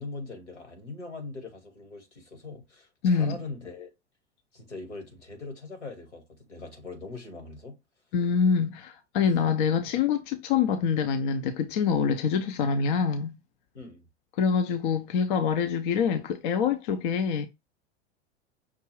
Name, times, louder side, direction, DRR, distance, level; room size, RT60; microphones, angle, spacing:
voice 1, 0.0-3.9 4.5-7.8 13.7-14.1, left 3 dB, 80° left, 1.8 m, -41 dB
voice 2, 3.0-3.4 8.1-13.3 14.4-17.5, left 6 dB, 45° left, 0.7 m, -25 dB
5.9 x 2.5 x 3.1 m
figure-of-eight pair, 90°, 35 cm